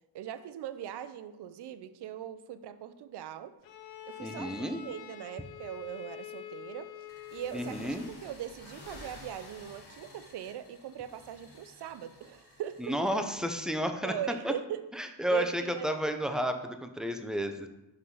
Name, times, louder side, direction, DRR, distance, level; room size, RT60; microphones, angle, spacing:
voice 1, 0.1-3.5 4.0-13.0 14.0-16.0, right 10 dB, 60° right, 13 dB, 0.6 m, -41 dB
Bowed string instrument, 3.6-8.2, left 11 dB, 80° left, 0.7 m, -46 dB
voice 2, 4.2-4.8 7.5-8.1 12.8-14.1 14.4-14.5 15.0-17.7, equal, ahead, 6 dB, 0.7 m, -31 dB
sound 1, 7.1-13.4, left 2 dB, 55° left, 2.5 m, -52 dB
5.4 x 4.0 x 5.4 m, 0.95 s
supercardioid pair, 60°, 45 cm